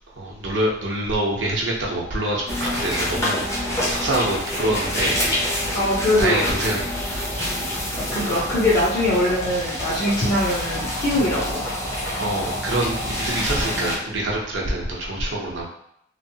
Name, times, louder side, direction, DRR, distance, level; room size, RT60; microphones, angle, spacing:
voice 1, 0.2-5.2 5.5-5.6 6.2-6.8 12.2-15.6, right 1 dB, 65° right, -3 dB, 0.7 m, -25 dB
sound 1, 2.5-14.0, left 1 dB, 15° left, 0.7 m, -27 dB
voice 2, 5.7-6.5 8.1-11.6, left 1 dB, 45° left, -11 dB, 0.7 m, -22 dB
3.0 x 2.0 x 2.7 m, 0.73 s
head